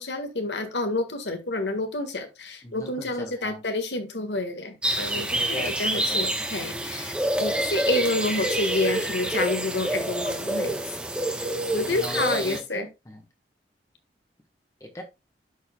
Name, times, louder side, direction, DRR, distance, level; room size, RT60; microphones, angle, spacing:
voice 1, 0.0-7.1 7.4-10.8 11.7-12.9, left 2 dB, 80° left, 7 dB, 1.5 m, -29 dB
voice 2, 2.6-3.6 5.0-6.3 6.5-6.8 11.7-13.2 14.8-15.0, left 1 dB, 20° left, 3 dB, 1.1 m, -39 dB
sound 1, 4.8-12.6, right 1 dB, 5° right, 0.9 m, -27 dB
13.0 x 4.4 x 2.2 m, 0.24 s
head